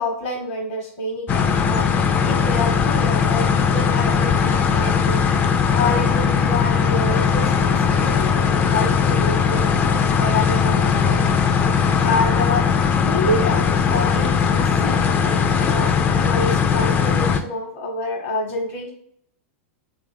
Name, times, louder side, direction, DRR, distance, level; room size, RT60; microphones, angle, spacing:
voice 1, 0.0-1.9 2.2-11.3 12.0-15.1 15.7-18.9, left 2 dB, 60° left, -3 dB, 1.0 m, -27 dB
sound 1, 1.3-17.4, left 6 dB, 25° left, 0.3 m, -19 dB
3.2 x 2.4 x 3.3 m, 0.66 s
hypercardioid pair, 125°, 8 cm